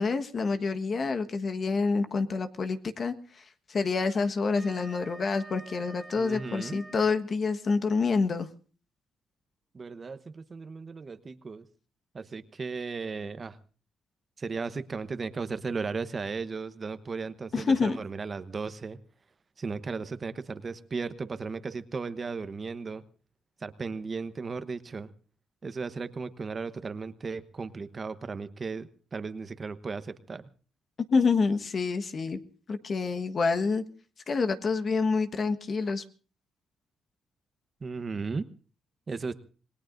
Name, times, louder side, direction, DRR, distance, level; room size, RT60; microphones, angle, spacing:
voice 1, 0.0-3.4 3.7-8.5 17.5-18.0 31.1-32.4 32.7-33.8 34.3-36.0, left 4 dB, 45° left, 8 dB, 1.4 m, -27 dB
Wind instrument woodwind instrument, 4.1-7.2, right 1 dB, 10° right, 2.6 m, -48 dB
voice 2, 6.2-6.8 9.7-11.7 12.1-13.6 14.4-19.0 19.6-23.0 23.6-25.1 25.6-30.4 37.8-38.4 39.1-39.3, right 4 dB, 35° right, 12 dB, 1.0 m, -36 dB
27.5 x 19.5 x 2.6 m, 0.38 s
cardioid pair, 90°, 0 cm